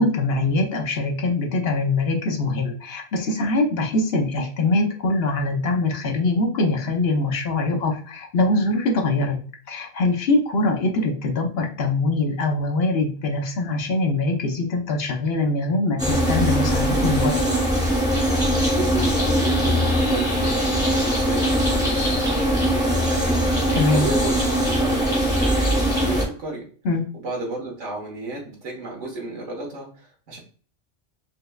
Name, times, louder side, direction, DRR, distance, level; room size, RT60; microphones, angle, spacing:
voice 1, 0.0-9.4 9.7-17.4 23.7-24.1 26.8-27.0, left 2 dB, 60° left, 3 dB, 0.9 m, -23 dB
sound 1, 16.0-26.2, equal, 5° right, 0.8 m, -21 dB
voice 2, 18.7-26.7 27.1-30.4, right 2 dB, 85° right, 0 dB, 1.6 m, -33 dB
4.7 x 3.2 x 2.3 m, 0.41 s
omnidirectional pair, 1.2 m